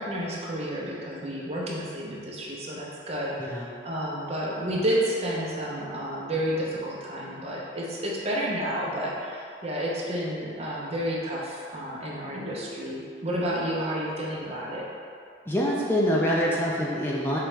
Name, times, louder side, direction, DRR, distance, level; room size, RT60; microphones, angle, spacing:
voice 1, 0.0-14.9, equal, 35° right, -4 dB, 0.7 m, -30 dB
voice 2, 15.5-17.4, equal, 15° left, -5 dB, 0.4 m, -25 dB
4.7 x 3.0 x 3.2 m, 2.3 s
head